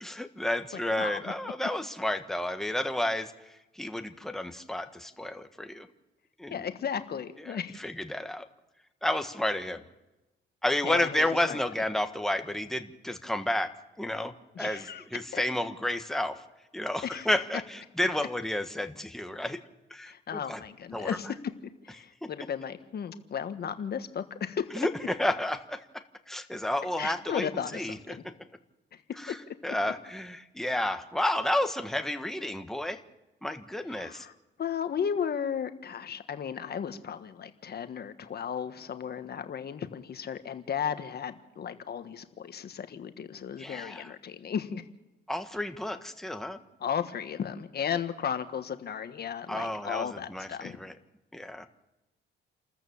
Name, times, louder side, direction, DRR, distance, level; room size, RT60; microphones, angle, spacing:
voice 1, 0.0-3.3 3.8-5.9 6.4-6.6 7.4-8.5 9.0-9.8 10.6-16.4 16.7-19.6 19.9-20.6 20.9-21.2 24.7-28.2 29.2-33.0 33.4-34.3 43.6-44.1 45.3-46.6 49.5-50.9 51.3-51.7, left 1 dB, ahead, 7 dB, 1.4 m, -31 dB
voice 2, 0.7-1.3 6.5-7.8 10.8-11.6 14.5-15.0 15.3-15.4 17.0-17.3 20.1-21.3 21.8-24.9 27.0-28.2 29.3-29.4 33.9-34.3 34.6-44.8 46.8-50.8, left 8 dB, 55° left, 9 dB, 1.5 m, -35 dB
28.5 x 14.0 x 7.1 m, 1.0 s
cardioid pair, 90°, 20 cm